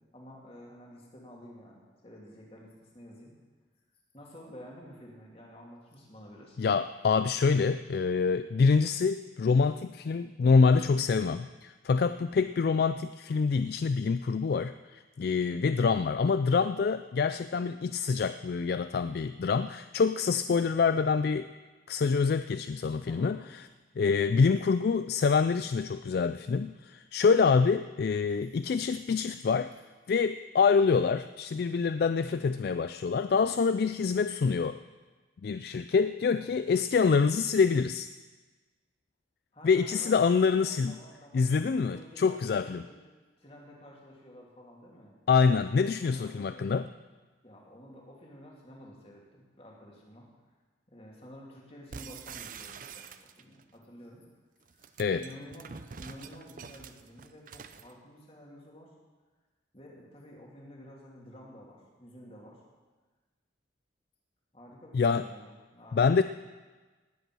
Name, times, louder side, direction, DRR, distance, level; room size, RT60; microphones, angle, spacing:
voice 1, 0.1-3.3 4.1-6.6 12.2-12.4 23.0-23.5 36.3-36.5 39.5-43.0 43.4-45.1 45.8-46.7 47.4-50.3 50.9-54.2 54.7-55.7 56.0-58.9 59.7-62.6 64.5-66.2, equal, 30° left, -2 dB, 2.8 m, -50 dB
voice 2, 6.6-21.5 21.9-23.7 24.0-29.7 30.1-34.8 35.4-38.1 39.6-41.0 41.3-42.8 45.3-46.9 55.0-55.2 64.9-65.2 65.9-66.2, left 5 dB, 55° left, 11 dB, 0.3 m, -26 dB
sound 1, 51.9-53.6 54.6-57.9, right 6 dB, 45° right, 0.5 m, -46 dB
19.0 x 8.2 x 6.2 m, 1.3 s
head